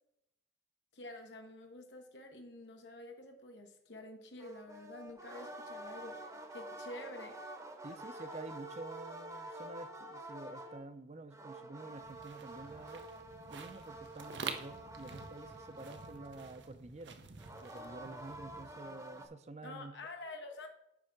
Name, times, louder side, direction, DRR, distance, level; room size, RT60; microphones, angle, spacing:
voice 1, 0.9-7.4 19.6-20.7, left 2 dB, 80° left, 3 dB, 1.0 m, -49 dB
sound 1, 4.4-10.9 11.3-16.7 17.4-19.3, right 1 dB, 20° right, 0.9 m, -48 dB
voice 2, 7.8-13.1 13.5-17.2 17.6-19.9, right 2 dB, 40° right, 11 dB, 0.6 m, -49 dB
sound 2, 12.0-19.2, right 5 dB, 90° right, 0.9 m, -49 dB
9.8 x 3.4 x 6.4 m, 0.82 s
head